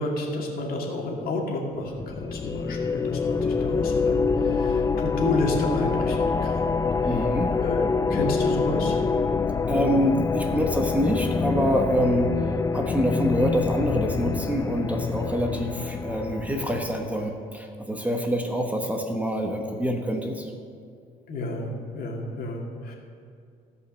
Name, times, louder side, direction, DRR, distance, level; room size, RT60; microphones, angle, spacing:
voice 1, 0.0-6.7 7.0-7.2 7.5-9.0 21.3-22.9, left 2 dB, 60° left, -1 dB, 2.4 m, -30 dB
sound 1, 1.9-17.3, left 4 dB, 20° left, 0.3 m, -26 dB
voice 2, 7.0-7.5 9.7-12.3 12.7-20.5, equal, 10° right, 2 dB, 1.1 m, -26 dB
16.5 x 5.5 x 6.3 m, 2.3 s
cardioid pair, 110°, 17 cm